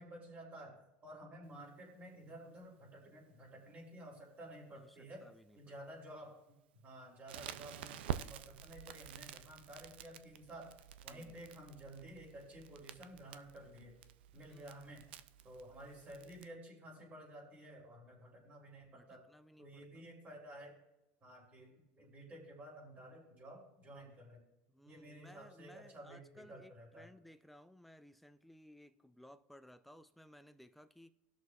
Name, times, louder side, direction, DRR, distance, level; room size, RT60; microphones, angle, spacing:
voice 1, 0.0-5.2 5.5-6.5 6.8-10.7 11.0-14.0 14.3-15.0 15.4-19.2 19.6-20.8 21.2-24.4 24.8-27.1, right 1 dB, 30° right, 3.3 m, -53 dB
voice 2, 4.7-5.8 11.1-11.4 14.5-14.7 18.9-20.0 24.7-31.1, equal, ahead, 0.4 m, -60 dB
Crackle, 7.3-16.4, right 10 dB, 85° right, 0.4 m, -48 dB
18.5 x 6.3 x 2.4 m
supercardioid pair, 110°, 6 cm